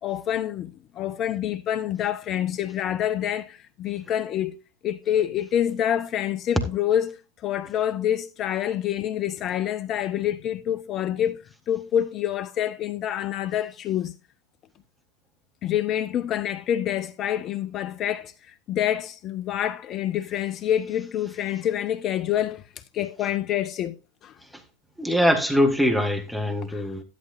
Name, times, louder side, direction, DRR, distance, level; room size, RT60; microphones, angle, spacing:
voice 1, 0.0-4.6 4.8-14.1 15.6-22.6 22.9-24.0 24.2-24.4 26.7-27.0, left 10 dB, 30° left, 0.5 m, -27 dB
voice 2, 25.0-27.0, equal, ahead, 1.8 m, -22 dB
12.5 x 11.5 x 2.5 m
figure-of-eight pair, 90°, 0 cm